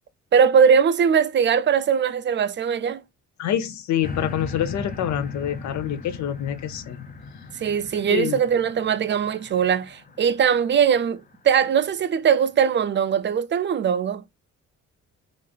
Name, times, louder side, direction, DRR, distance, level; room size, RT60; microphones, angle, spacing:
voice 1, 0.3-3.0 7.6-14.2, right 7 dB, 40° right, 0.4 m, -20 dB
voice 2, 3.4-7.0 8.1-8.4, left 10 dB, 70° left, 0.7 m, -26 dB
sound 1, 4.0-11.4 12.0-12.1, left 3 dB, 30° left, 0.6 m, -38 dB
3.1 x 2.5 x 2.3 m
cardioid pair, 90°, 30 cm